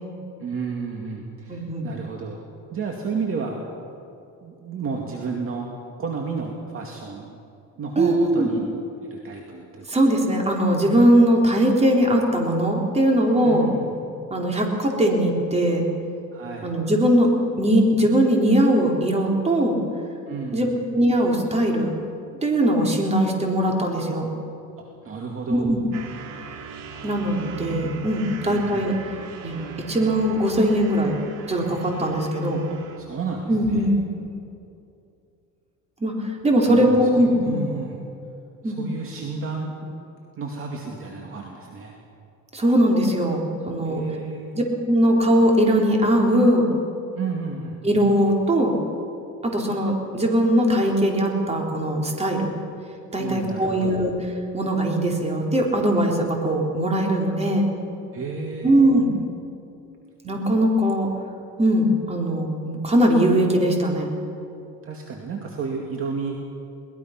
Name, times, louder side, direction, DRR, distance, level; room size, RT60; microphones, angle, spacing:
voice 1, 0.4-2.4 2.7-3.6 4.4-5.7 6.0-7.4 7.8-8.6 9.1-10.0 13.4-13.9 16.3-16.7 20.3-20.7 25.0-25.7 28.4-28.9 33.0-33.9 36.6-38.0 38.6-39.9 40.4-42.0 43.8-44.6 47.1-47.8 53.2-54.0 58.1-58.8 64.8-66.4, right 4 dB, 40° right, 1 dB, 2.4 m, -32 dB
voice 2, 1.5-1.9 8.0-8.5 9.9-13.7 14.3-15.8 16.6-17.3 17.6-19.8 20.5-22.0 22.4-24.3 25.5-25.8 27.0-28.9 29.4-29.6 29.9-31.2 31.5-32.6 33.5-34.0 36.0-37.6 38.6-38.8 42.5-44.0 44.5-46.7 47.8-48.8 49.4-52.5 53.1-54.1 54.5-57.7 58.6-59.1 60.2-61.1 61.6-64.1, right 1 dB, 20° right, 0 dB, 4.0 m, -20 dB
sound 1, 25.9-33.0, right 3 dB, 70° right, 2.7 m, -39 dB
22.5 x 20.0 x 6.0 m, 2.6 s
cardioid pair, 120°, 33 cm